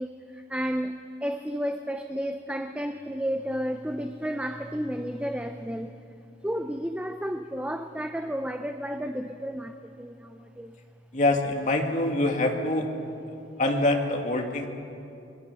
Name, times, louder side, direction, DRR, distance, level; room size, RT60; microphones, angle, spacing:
voice 1, 0.0-6.0 6.4-10.8, equal, 5° right, 7 dB, 0.7 m, -32 dB
voice 2, 11.1-12.9 13.6-14.7, left 2 dB, 45° left, 2 dB, 2.3 m, -25 dB
25.0 x 23.5 x 7.0 m, 2.6 s
head